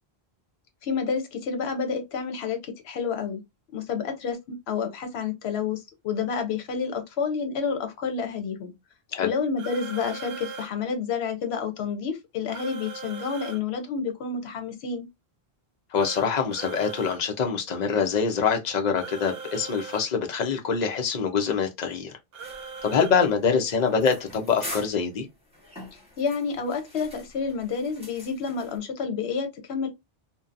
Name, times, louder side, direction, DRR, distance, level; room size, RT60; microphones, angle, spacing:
voice 1, 0.8-2.6 2.8-3.4 3.7-8.7 9.2-15.1 26.2-29.9, left 5 dB, 80° left, 0.9 m, -29 dB
sound 1, 9.6-10.7 12.5-13.6 15.9-17.2 18.9-20.1 22.3-23.1, right 5 dB, 70° right, 0.8 m, -39 dB
voice 2, 15.9-22.1 22.8-25.3, left 6 dB, 50° left, 0.6 m, -25 dB
sound 2, 22.4-28.8, equal, 5° right, 1.1 m, -44 dB
2.7 x 2.1 x 2.4 m
omnidirectional pair, 1.1 m